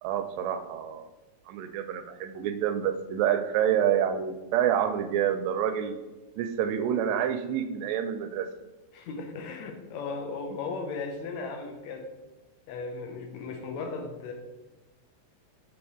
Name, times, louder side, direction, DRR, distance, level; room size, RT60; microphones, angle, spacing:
voice 1, 0.0-1.1 1.5-6.0 6.4-8.5, right 9 dB, 80° right, 9 dB, 1.7 m, -28 dB
voice 2, 8.9-12.1 12.7-14.3, left 4 dB, 75° left, 4 dB, 2.1 m, -36 dB
7.0 x 4.9 x 3.5 m, 1.1 s
omnidirectional pair, 3.3 m